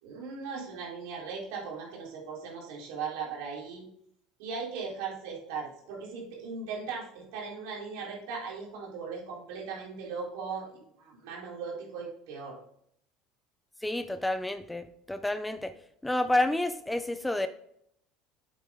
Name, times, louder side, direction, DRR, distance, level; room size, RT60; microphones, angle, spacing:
voice 1, 0.0-3.8 4.4-12.6, right 5 dB, 80° right, -3 dB, 3.6 m, -38 dB
voice 2, 13.8-15.7 16.0-17.5, left 1 dB, 5° left, 11 dB, 0.4 m, -29 dB
8.3 x 8.2 x 3.6 m, 0.71 s
cardioid pair, 160°, 0 cm